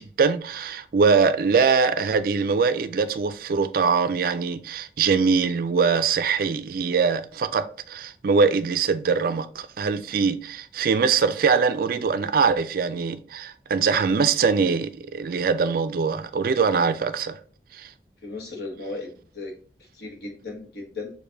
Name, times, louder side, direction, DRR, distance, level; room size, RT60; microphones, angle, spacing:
voice 1, 0.0-17.4 17.7-17.9, right 5 dB, 55° right, 0.3 m, -22 dB
voice 2, 18.2-19.5 19.9-21.1, left 3 dB, 65° left, 1.2 m, -36 dB
6.5 x 2.6 x 2.6 m
head